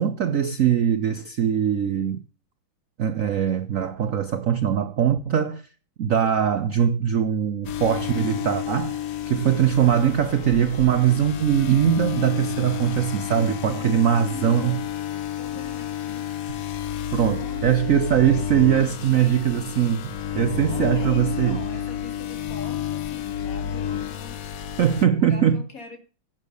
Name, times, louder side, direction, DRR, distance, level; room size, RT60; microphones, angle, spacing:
voice 1, 0.0-2.2 3.0-5.6 6.0-9.0 9.3-14.8 17.1-21.6 24.8-25.6, right 9 dB, 80° right, 0.7 m, -21 dB
sound 1, 7.6-25.0, left 10 dB, 65° left, 0.8 m, -30 dB
voice 2, 13.2-16.3 17.1-17.7 18.8-20.0 20.7-24.4 25.0-26.0, left 3 dB, 40° left, 2.5 m, -43 dB
11.0 x 7.4 x 6.9 m
omnidirectional pair, 2.4 m